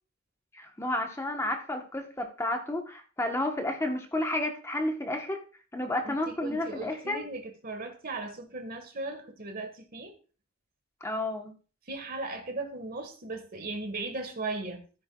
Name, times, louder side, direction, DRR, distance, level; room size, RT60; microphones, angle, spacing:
voice 1, 0.5-5.4 5.7-7.2 11.0-11.5, left 1 dB, 15° left, 1.1 m, -31 dB
voice 2, 6.0-10.1 11.9-14.8, right 3 dB, 45° right, 1.6 m, -37 dB
13.5 x 9.2 x 2.3 m
head